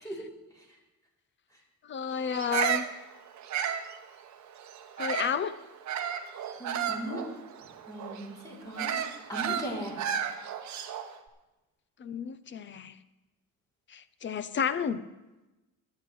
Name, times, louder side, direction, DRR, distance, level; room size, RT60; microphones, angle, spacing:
voice 1, 1.9-2.9 5.0-5.5 12.0-13.0 13.9-15.0, left 7 dB, 35° left, 14 dB, 0.4 m, -31 dB
Bird vocalization bird call bird song, 2.3-5.4 5.9-11.2, right 8 dB, 55° right, 0.9 m, -33 dB
voice 2, 6.6-7.3 7.9-10.0, equal, 10° left, -4 dB, 3.1 m, -38 dB
23.0 x 9.4 x 3.1 m, 1.1 s
cardioid pair, 165°, 35 cm